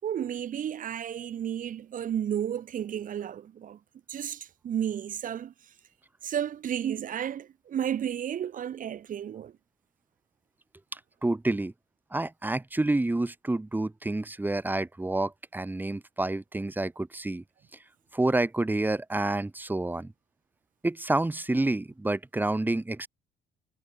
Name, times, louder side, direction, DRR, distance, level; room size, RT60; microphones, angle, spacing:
voice 1, 0.0-3.8 4.1-5.5 6.2-9.5, right 9 dB, 50° right, 6.5 m, -32 dB
voice 2, 10.9-11.7 12.1-17.4 18.1-20.1 20.8-23.1, right 2 dB, 10° right, 7.5 m, -28 dB
cardioid pair, 110°, 17 cm